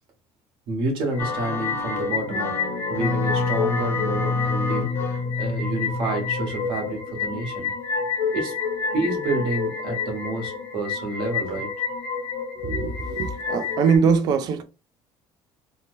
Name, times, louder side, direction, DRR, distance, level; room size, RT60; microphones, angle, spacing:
voice 1, 0.7-2.6 2.9-7.7 8.3-8.6 8.9-11.7, right 2 dB, 65° right, 1.2 m, -29 dB
sound 1, 1.1-14.0, left 5 dB, 65° left, 0.9 m, -29 dB
sound 2, 1.2-6.9, left 3 dB, 25° left, 0.4 m, -28 dB
voice 2, 12.6-14.6, right 6 dB, 45° right, 0.4 m, -22 dB
2.8 x 2.1 x 2.9 m
cardioid pair, 170°, 9 cm